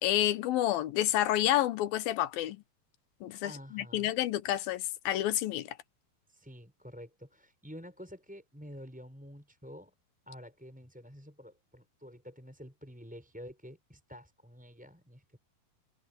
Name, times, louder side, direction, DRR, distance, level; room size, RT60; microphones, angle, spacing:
voice 1, 0.0-2.6 3.2-5.8, left 13 dB, 75° left, 2.6 m, -29 dB
voice 2, 3.4-4.1 6.3-9.9 10.3-15.4, equal, ahead, 6.1 m, -49 dB
omnidirectional pair, 4.7 m